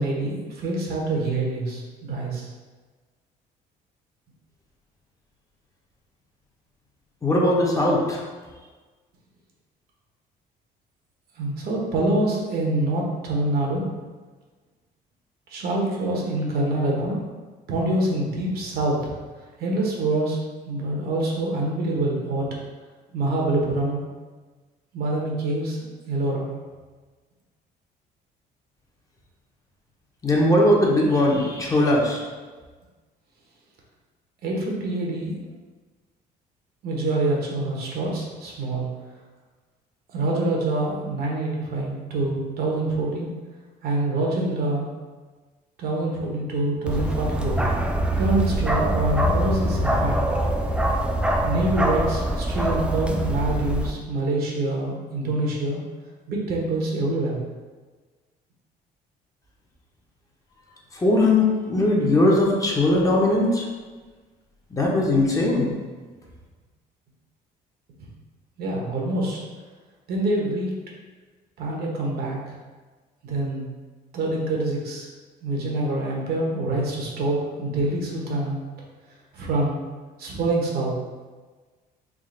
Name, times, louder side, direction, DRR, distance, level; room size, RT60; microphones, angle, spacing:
voice 1, 0.0-2.5 11.4-13.9 15.5-17.2 17.7-19.1 19.6-20.4 20.7-22.6 23.1-24.0 24.9-26.5 34.4-35.4 36.8-38.9 40.1-43.3 43.8-44.9 45.8-47.6 48.2-50.3 51.4-55.8 56.3-57.4 68.6-69.4 70.1-70.7 71.6-72.4 73.2-73.7 74.1-75.1 75.4-78.6 79.3-79.8 80.2-80.9, right 2 dB, 65° right, -2 dB, 0.9 m, -25 dB
voice 2, 7.2-8.2 30.2-32.2 60.9-63.6 64.7-65.7, left 1 dB, 20° left, -3 dB, 0.7 m, -20 dB
Bark, 46.9-53.9, right 1 dB, 5° right, 0.3 m, -24 dB
3.6 x 2.4 x 3.8 m, 1.3 s
cardioid pair, 110°, 17 cm